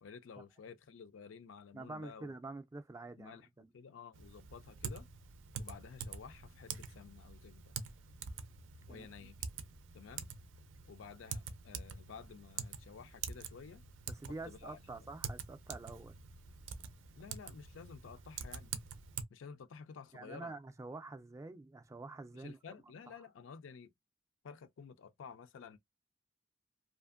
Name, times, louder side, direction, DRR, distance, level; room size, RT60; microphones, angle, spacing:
voice 1, 0.0-2.3 3.2-3.5 3.7-5.1 5.6-7.7 8.9-9.4 9.9-10.3 10.9-13.8 14.4-15.1 17.2-18.7 19.3-20.5 22.3-23.9 24.4-25.8, left 6 dB, 85° left, 0.4 m, -52 dB
voice 2, 1.7-3.7 8.9-9.1 14.1-16.2 20.1-22.6, right 3 dB, 15° right, 0.3 m, -47 dB
Typing, 4.1-19.2, right 6 dB, 85° right, 0.4 m, -46 dB
2.5 x 2.5 x 2.4 m
head